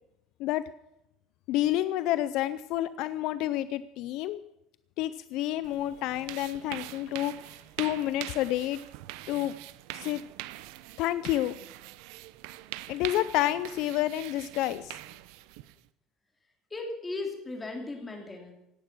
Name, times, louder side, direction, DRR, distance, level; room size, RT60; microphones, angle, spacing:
voice 1, 1.5-4.4 5.0-7.3 7.8-8.8 9.3-9.6 9.9-10.2 11.0-11.5 12.9-15.0, left 14 dB, 60° left, 14 dB, 0.5 m, -29 dB
sound 1, 5.6-15.9, right 17 dB, 80° right, 0.7 m, -43 dB
voice 2, 16.7-18.5, left 2 dB, 15° left, 2 dB, 3.0 m, -36 dB
17.0 x 11.5 x 6.1 m, 0.87 s
cardioid pair, 155°, 0 cm